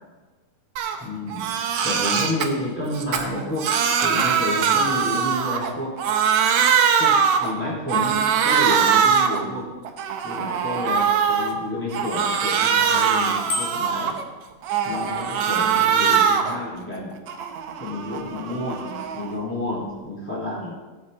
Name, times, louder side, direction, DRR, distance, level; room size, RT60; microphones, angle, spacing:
Crying sobbing, 0.8-1.0 1.3-2.5 2.9-5.7 6.0-7.5 7.9-9.4 9.8-11.5 11.9-14.2 14.6-16.6 16.9-19.3, right 7 dB, 75° right, 1.7 m, -22 dB
voice 1, 1.0-1.5 1.8-3.7 4.0-5.9 6.4-6.5 7.0-9.7 10.2-14.2 14.8-17.2 17.8-20.7, left 1 dB, 5° left, -6 dB, 3.8 m, -30 dB
Bicycle bell, 13.5-14.1, left 3 dB, 60° left, 2.7 m, -29 dB
19.5 x 8.1 x 4.0 m, 1.3 s
omnidirectional pair, 4.4 m